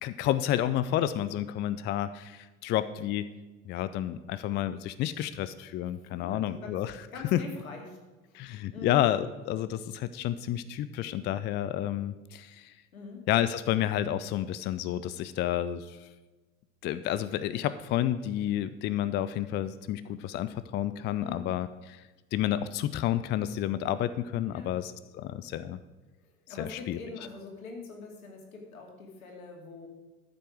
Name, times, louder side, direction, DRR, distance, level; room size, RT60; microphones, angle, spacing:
voice 1, 0.0-3.3 3.7-6.9 7.3-7.4 8.3-12.7 13.3-16.1 16.8-22.0 22.3-25.8 26.6-27.0, left 12 dB, 25° left, 14 dB, 0.4 m, -30 dB
voice 2, 6.1-6.7 7.1-8.0 8.3-8.4 8.7-9.0 12.9-13.2 21.2-21.5 24.5-24.7 26.5-29.9, left 3 dB, 70° left, 2 dB, 2.4 m, -43 dB
13.0 x 7.9 x 4.8 m, 1.2 s
figure-of-eight pair, 65°, 43 cm